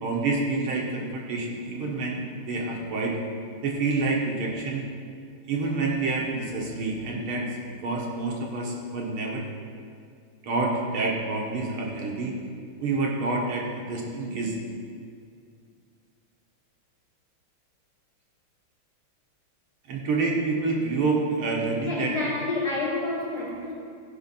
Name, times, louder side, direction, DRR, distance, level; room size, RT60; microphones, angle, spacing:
voice 1, 0.0-3.2 3.6-4.9 5.5-7.5 7.8-9.4 10.4-12.4 12.8-14.5 19.9-22.2, right 3 dB, 90° right, -2 dB, 2.3 m, -28 dB
voice 2, 21.8-23.7, left 3 dB, 15° left, -8 dB, 3.3 m, -29 dB
15.0 x 5.3 x 5.8 m, 2.2 s
omnidirectional pair, 2.3 m